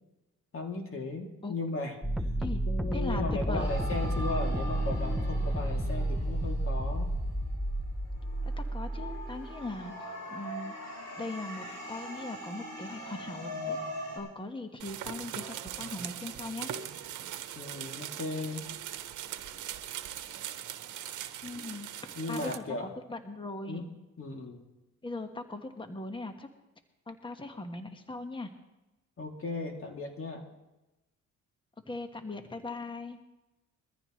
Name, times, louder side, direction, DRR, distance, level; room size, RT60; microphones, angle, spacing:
voice 1, 0.5-2.3 2.7-7.1 17.5-18.6 22.2-22.9 23.7-23.9 24.2-24.7 29.2-30.4, left 3 dB, 45° left, 1 dB, 2.9 m, -36 dB
sound 1, 2.0-9.7, right 1 dB, ahead, 0.8 m, -31 dB
voice 2, 2.9-3.7 8.4-10.8 11.2-13.8 14.1-16.7 21.4-21.9 22.3-22.6 23.1-23.9 25.0-26.5 27.1-28.5 31.9-33.2, left 2 dB, 15° left, 6 dB, 1.5 m, -39 dB
sound 2, 3.6-7.6 8.1-14.2, left 1 dB, 65° left, 6.9 m, -41 dB
sound 3, 14.8-22.6, right 10 dB, 75° right, 1.1 m, -40 dB
22.5 x 14.5 x 3.2 m, 1.0 s
cardioid pair, 90°, 30 cm